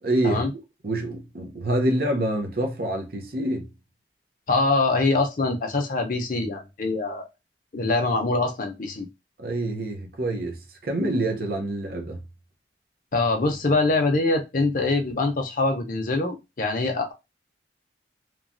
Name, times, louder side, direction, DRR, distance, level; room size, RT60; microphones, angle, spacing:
voice 1, 0.0-0.4 0.8-3.7 9.4-12.2, right 1 dB, 55° right, 0.6 m, -26 dB
voice 2, 4.5-7.3 7.7-9.1 13.1-17.1, left 3 dB, 50° left, 0.6 m, -24 dB
3.0 x 2.2 x 2.5 m
head